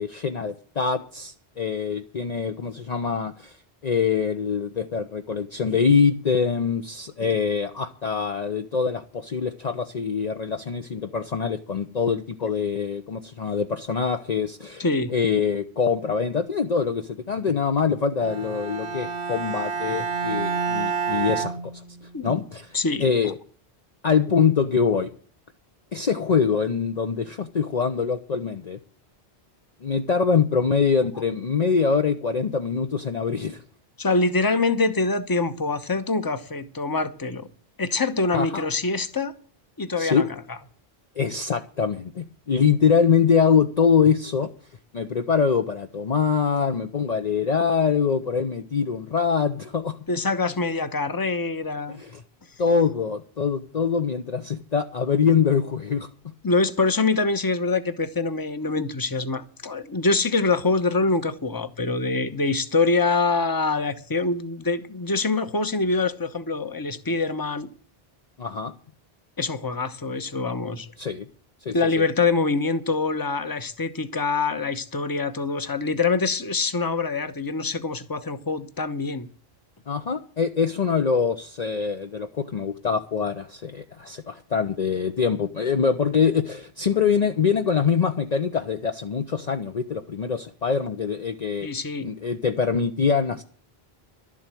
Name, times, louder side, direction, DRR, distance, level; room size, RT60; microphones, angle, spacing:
voice 1, 0.0-3.5 3.8-14.8 15.1-21.6 22.2-22.7 23.0-23.3 24.0-25.1 25.9-28.8 29.8-33.6 38.3-38.6 40.0-40.2 41.2-44.5 44.9-50.0 52.0-52.2 52.6-56.1 68.4-68.7 71.0-71.3 71.6-72.0 79.9-91.7 92.0-93.4, left 6 dB, 45° left, 0.8 m, -24 dB
voice 2, 14.8-15.1 22.1-22.4 22.7-23.1 34.0-37.5 37.8-39.3 39.8-40.6 50.1-52.0 56.4-67.7 69.4-70.9 71.7-79.3 91.6-92.1, left 3 dB, 20° left, 0.9 m, -25 dB
Bowed string instrument, 18.2-22.3, right 6 dB, 65° right, 1.0 m, -29 dB
12.0 x 7.5 x 9.0 m
omnidirectional pair, 1.0 m